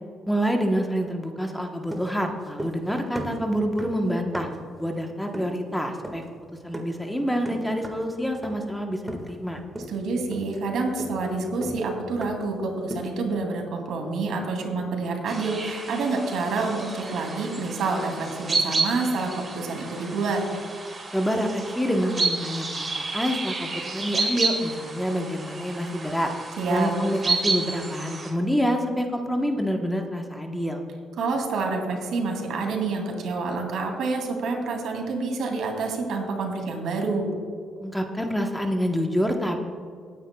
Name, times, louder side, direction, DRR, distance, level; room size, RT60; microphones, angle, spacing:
voice 1, 0.3-4.5 4.8-6.2 6.6-9.6 21.1-26.3 26.7-30.8 37.8-39.6, equal, 5° left, 3 dB, 1.1 m, -27 dB
sound 1, 1.9-2.9 3.1-4.7 5.3-5.6 6.0-6.3 6.7-7.0 7.5-8.1 8.4-8.7 9.1-9.5 9.8-10.0 10.3-12.6 12.9-13.3, right 1 dB, 15° right, 1.7 m, -37 dB
voice 2, 9.9-20.4 26.6-26.9 31.2-37.3, right 3 dB, 75° right, 2 dB, 2.6 m, -28 dB
sound 2, 15.3-28.3, right 3 dB, 30° right, 3.0 m, -31 dB
19.5 x 9.8 x 2.3 m, 2.2 s
cardioid pair, 90°, 0 cm